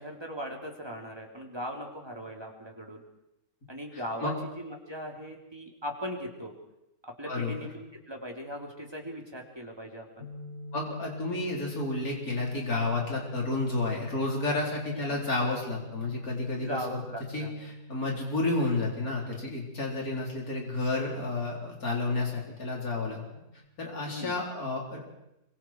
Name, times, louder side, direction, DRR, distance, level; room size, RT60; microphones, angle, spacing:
voice 1, 0.0-3.0 3.7-6.5 7.0-10.3 16.6-17.5 24.1-24.3, equal, 15° right, 0 dB, 3.3 m, -39 dB
sound 1, 10.2-23.6, left 1 dB, 85° right, 4.9 m, -46 dB
voice 2, 10.7-17.0 17.3-23.2 23.8-25.0, left 2 dB, 55° left, -2 dB, 4.9 m, -31 dB
26.5 x 24.0 x 4.7 m, 0.88 s
omnidirectional pair, 1.8 m